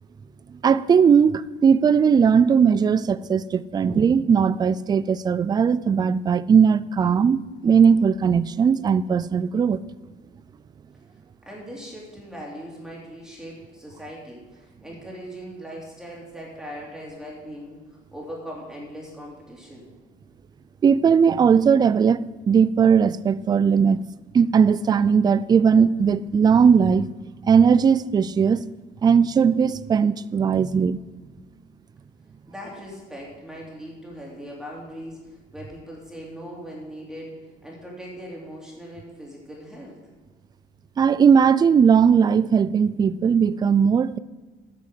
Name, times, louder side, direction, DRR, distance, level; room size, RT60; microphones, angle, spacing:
voice 1, 0.6-9.8 20.8-24.0 24.3-27.1 27.5-28.6 29.0-31.0 41.0-44.2, right 6 dB, 25° right, 0.3 m, -18 dB
voice 2, 11.5-19.9 32.5-37.3 37.6-40.0, equal, 5° right, 3.0 m, -39 dB
9.0 x 6.2 x 7.8 m
cardioid pair, 110°, 17 cm